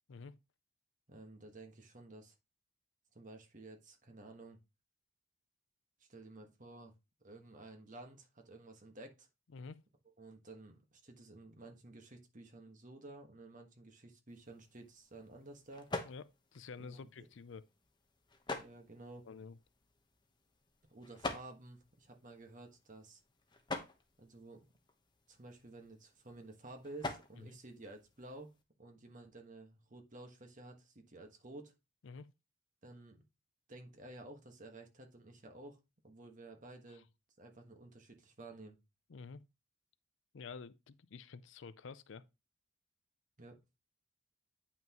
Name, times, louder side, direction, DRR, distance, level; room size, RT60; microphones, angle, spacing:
voice 1, 1.1-2.3 3.1-4.6 6.0-6.9 7.2-9.3 10.2-15.9 16.8-17.3 18.5-19.3 20.9-23.2 24.2-24.7 25.3-28.5 28.8-31.7 32.8-33.2 33.7-37.1 37.4-38.8 43.4-43.6, right 2 dB, 40° right, 1.4 m, -53 dB
sound 1, 14.3-28.6, left 2 dB, 20° left, 1.0 m, -48 dB
voice 2, 16.0-17.7 19.2-19.6 27.4-27.5 32.0-32.3 36.9-37.0 39.1-39.4 40.3-42.2, left 5 dB, 60° left, 0.5 m, -49 dB
9.0 x 5.8 x 3.0 m
head